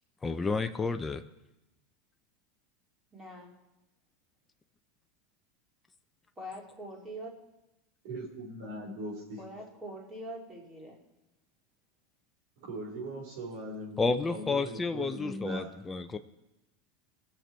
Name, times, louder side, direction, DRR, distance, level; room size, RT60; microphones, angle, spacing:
voice 1, 0.2-1.2 14.0-16.2, left 4 dB, 15° left, 7 dB, 0.5 m, -31 dB
voice 2, 3.1-3.5 6.4-7.3 9.4-11.0, right 1 dB, 15° right, -2 dB, 2.7 m, -43 dB
voice 3, 8.0-9.4 12.6-15.7, right 1 dB, 70° right, -3 dB, 4.0 m, -39 dB
20.0 x 6.8 x 4.4 m, 0.96 s
supercardioid pair, 145°, 0 cm